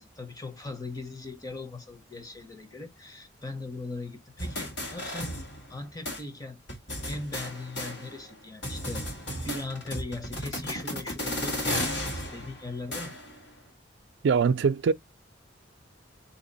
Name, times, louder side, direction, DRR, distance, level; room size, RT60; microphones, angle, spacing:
voice 1, 0.0-5.4 5.7-6.6 7.0-9.1 9.4-13.2, left 2 dB, 20° left, 0.8 m, -39 dB
sound 1, 4.4-5.8 6.1-6.2 6.7-8.3 8.6-13.4, left 1 dB, 65° left, 1.5 m, -34 dB
voice 2, 14.2-14.9, right 5 dB, 65° right, 0.4 m, -22 dB
3.7 x 2.8 x 4.0 m
head